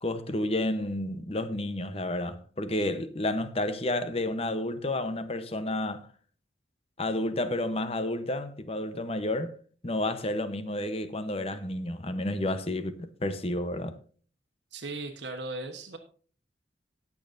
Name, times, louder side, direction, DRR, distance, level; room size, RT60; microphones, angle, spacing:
voice 1, 0.0-6.1 7.0-9.6 9.8-14.0, left 1 dB, 35° left, 0.9 m, -31 dB
voice 2, 14.7-16.0, right 2 dB, 65° right, 1.2 m, -37 dB
19.0 x 7.1 x 2.6 m
head